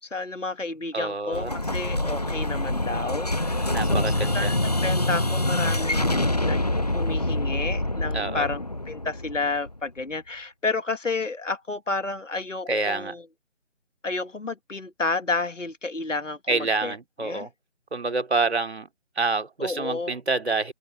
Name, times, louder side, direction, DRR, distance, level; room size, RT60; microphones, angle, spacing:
voice 1, 0.0-8.6 8.9-13.2 14.0-17.0 17.2-17.5 19.6-20.1, left 3 dB, 85° left, 1.7 m, -31 dB
voice 2, 0.9-1.5 3.7-4.5 8.1-8.5 12.7-13.1 16.5-17.5 17.9-18.9 19.2-20.7, right 3 dB, 60° right, 3.2 m, -27 dB
Explosion, 1.3-10.0, left 1 dB, 35° left, 0.5 m, -26 dB
open air
figure-of-eight pair, 160°, 37 cm